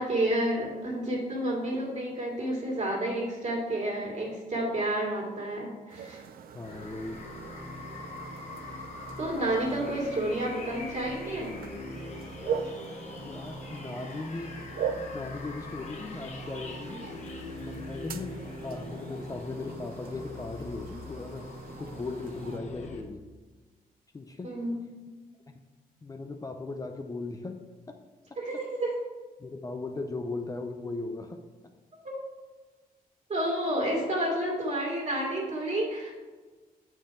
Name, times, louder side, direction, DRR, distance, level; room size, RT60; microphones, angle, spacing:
voice 1, 0.0-6.2 9.2-11.5 24.4-24.8 28.4-29.0 32.0-32.2 33.3-36.1, right 1 dB, 45° right, -3 dB, 2.4 m, -30 dB
sound 1, 5.9-22.6, right 7 dB, 75° right, 0.5 m, -41 dB
voice 2, 6.5-7.3 13.2-14.7 15.0-17.2 17.6-23.3 24.1-24.5 26.0-28.0 29.4-31.4 33.7-33.8, left 3 dB, 25° left, 5 dB, 0.5 m, -38 dB
sound 2, 6.6-23.0, left 2 dB, 50° left, 1.1 m, -42 dB
7.8 x 4.5 x 4.8 m, 1.3 s
cardioid pair, 120°, 15 cm